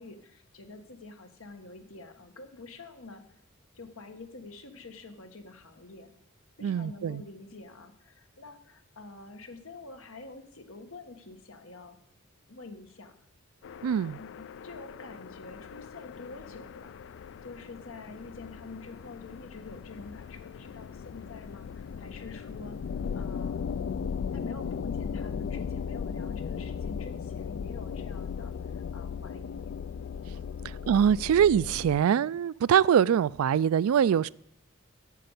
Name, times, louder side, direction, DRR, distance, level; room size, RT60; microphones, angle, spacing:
voice 1, 0.0-3.2 3.7-6.1 6.6-12.0 12.5-13.1 14.1-17.0 17.4-22.8 23.1-23.6 24.3-29.8, left 3 dB, 75° left, 1.5 m, -46 dB
voice 2, 6.6-7.2 13.8-14.2 30.6-34.3, right 8 dB, 85° right, 0.3 m, -23 dB
sound 1, 13.6-32.0, left 6 dB, 60° left, 0.3 m, -37 dB
8.4 x 7.7 x 8.2 m
head